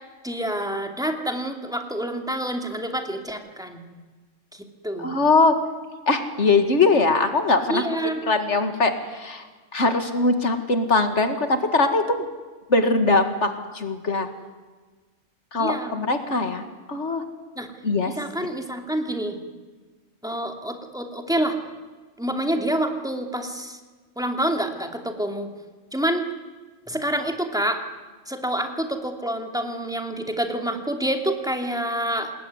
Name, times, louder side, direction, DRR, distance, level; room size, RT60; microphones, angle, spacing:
voice 1, 0.2-3.8 4.5-5.1 7.7-8.2 15.6-16.0 17.6-17.7 18.0-19.4 20.2-21.6 22.2-23.8 24.2-25.5 25.9-26.3 26.9-27.8 28.3-32.3, right 1 dB, 5° right, 4 dB, 2.7 m, -27 dB
voice 2, 5.0-5.6 6.1-7.8 8.3-9.5 9.7-12.3 12.7-14.3 15.5-17.2 17.8-18.1, left 3 dB, 65° left, 7 dB, 2.3 m, -21 dB
28.0 x 20.5 x 9.7 m, 1.4 s
omnidirectional pair, 1.3 m